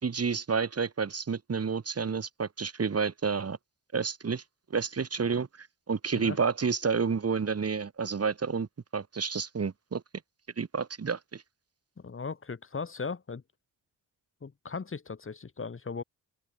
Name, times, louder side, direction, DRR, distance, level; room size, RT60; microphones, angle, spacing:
voice 1, 0.0-3.6 3.9-4.4 4.7-8.7 8.9-10.0 10.6-11.4, right 5 dB, 45° right, 4.9 m, -30 dB
voice 2, 12.0-13.4 14.4-16.0, left 5 dB, 40° left, 3.1 m, -37 dB
open air
cardioid pair, 75°, 33 cm